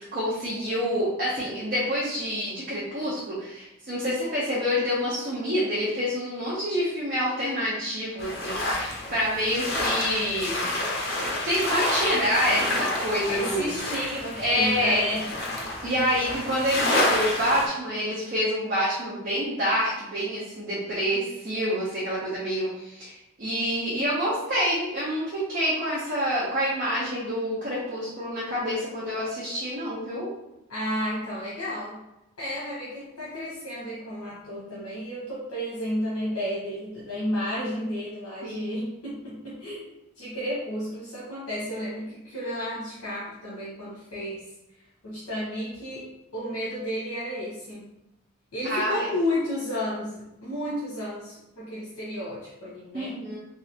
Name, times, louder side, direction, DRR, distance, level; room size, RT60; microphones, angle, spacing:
voice 1, 0.1-10.7 11.4-13.7 14.4-15.0 15.8-30.3 38.4-38.8 48.7-49.1 52.9-53.4, equal, 40° right, -8 dB, 0.7 m, -27 dB
sound 1, 8.2-17.7, left 1 dB, 45° left, 0.6 m, -29 dB
voice 2, 13.3-15.3 30.7-32.0 32.4-39.9 40.2-44.5 45.0-47.9 48.5-53.2, equal, 75° left, -7 dB, 0.8 m, -32 dB
3.1 x 2.7 x 2.8 m, 0.92 s
head